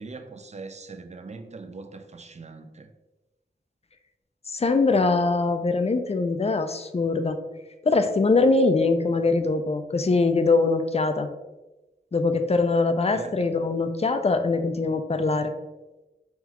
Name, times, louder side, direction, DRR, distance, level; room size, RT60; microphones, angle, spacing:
voice 1, 0.0-2.9 13.1-13.6, right 3 dB, 40° right, 0.4 m, -41 dB
voice 2, 4.5-7.4 7.8-11.3 12.1-15.5, left 3 dB, 35° left, 0.4 m, -22 dB
5.7 x 2.3 x 2.9 m
wide cardioid pair, 60°, 19 cm